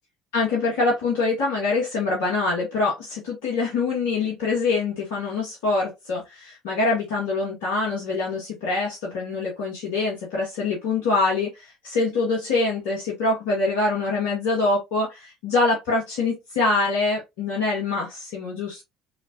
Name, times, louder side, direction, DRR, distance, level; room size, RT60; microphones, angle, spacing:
voice 1, 0.3-18.8, left 3 dB, 65° left, 0.9 m, -24 dB
3.1 x 3.1 x 2.6 m
figure-of-eight pair, 55°, 0 cm